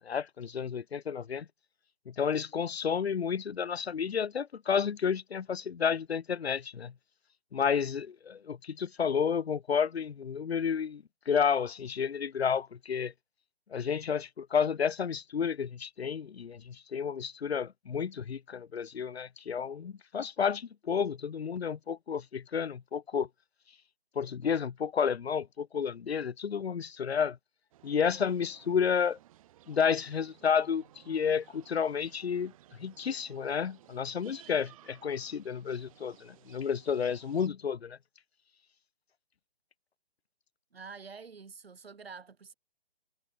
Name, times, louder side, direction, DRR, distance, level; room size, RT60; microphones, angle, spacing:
voice 1, 0.1-1.5 2.1-6.9 7.5-13.1 13.7-23.3 24.2-27.4 27.8-29.2 29.7-32.5 32.8-38.0, left 7 dB, 90° left, 0.7 m, -31 dB
sound 1, 27.7-37.5, right 13 dB, 35° right, 4.3 m, -59 dB
voice 2, 40.7-42.5, right 5 dB, 75° right, 7.0 m, -47 dB
hypercardioid pair, 150°, 31 cm